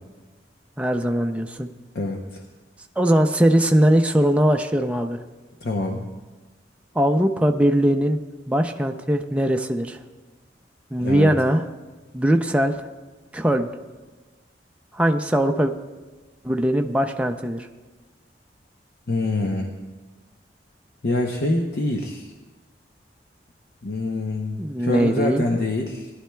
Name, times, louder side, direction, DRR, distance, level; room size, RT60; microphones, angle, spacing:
voice 1, 0.8-1.7 3.0-5.2 6.9-8.2 8.5-10.0 10.9-11.6 12.1-12.9 13.3-13.7 14.9-15.7 16.4-17.7 24.6-25.4, right 1 dB, 5° right, 4 dB, 0.4 m, -20 dB
voice 2, 1.9-2.4 5.6-6.1 11.0-11.3 19.1-19.7 21.0-22.3 23.8-26.1, left 2 dB, 60° left, 1 dB, 0.7 m, -25 dB
17.5 x 11.0 x 2.3 m, 1.3 s
head